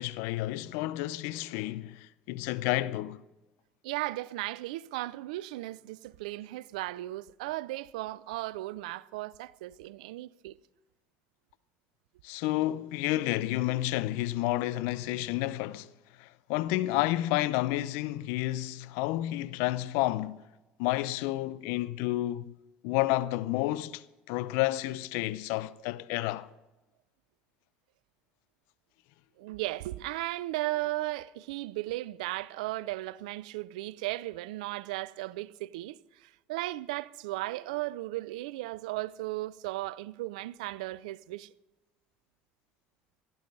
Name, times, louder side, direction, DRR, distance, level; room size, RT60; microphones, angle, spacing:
voice 1, 0.0-3.2 12.2-15.9 16.2-20.4 20.8-22.5 22.8-26.5, left 16 dB, 75° left, 0.6 m, -30 dB
voice 2, 3.8-10.6 29.4-41.5, right 18 dB, 80° right, 0.4 m, -36 dB
16.0 x 12.0 x 5.3 m
hypercardioid pair, 70°, 4 cm